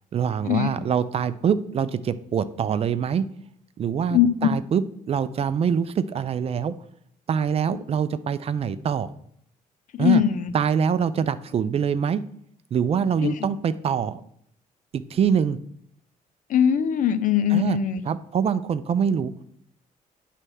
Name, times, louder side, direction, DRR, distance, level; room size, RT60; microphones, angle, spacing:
voice 1, 0.1-3.2 3.8-6.7 7.3-9.1 10.0-10.2 10.5-12.2 12.7-14.2 14.9-15.6 17.5-17.8 18.0-19.3, right 7 dB, 45° right, 15 dB, 0.4 m, -24 dB
voice 2, 4.1-4.5 10.0-10.5 13.2-13.3 16.5-18.0, left 9 dB, 65° left, 12 dB, 0.6 m, -21 dB
9.7 x 3.3 x 6.2 m, 0.69 s
cardioid pair, 125°, 15 cm